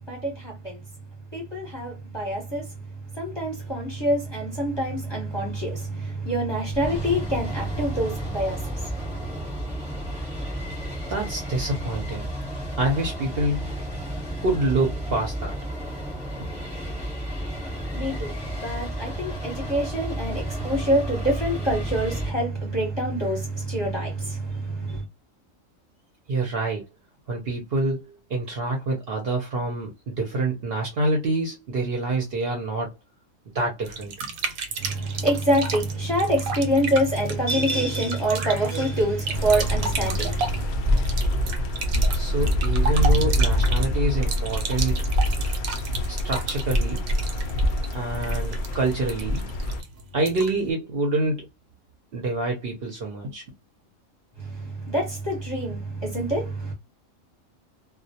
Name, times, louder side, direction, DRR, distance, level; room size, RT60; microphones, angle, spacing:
voice 1, 0.1-0.8 1.3-9.1 17.9-25.0 34.8-40.7 54.4-56.7, right 1 dB, 25° left, 0.7 m, -26 dB
sound 1, 6.7-22.3, equal, 5° right, 0.7 m, -33 dB
voice 2, 11.1-12.3 12.8-13.7 14.4-15.6 26.3-26.9 27.3-32.9 33.5-34.3 42.1-45.0 46.1-47.0 47.9-49.5 50.1-51.5 52.1-53.4, right 2 dB, 55° right, 0.7 m, -26 dB
sound 2, 33.8-50.7, right 4 dB, 85° right, 1.0 m, -34 dB
sound 3, 39.3-49.8, equal, 80° left, 0.4 m, -24 dB
2.1 x 2.1 x 2.7 m
omnidirectional pair, 1.4 m